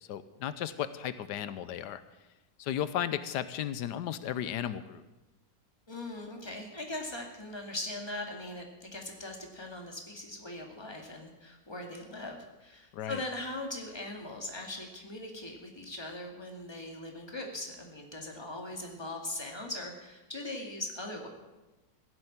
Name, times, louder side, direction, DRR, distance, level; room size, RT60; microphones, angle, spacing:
voice 1, 0.0-2.0 2.6-5.0 12.9-13.2, left 10 dB, 90° left, 13 dB, 1.3 m, -35 dB
voice 2, 5.9-21.3, left 2 dB, 15° left, 1 dB, 2.1 m, -40 dB
16.0 x 7.8 x 8.6 m, 1.1 s
omnidirectional pair, 1.8 m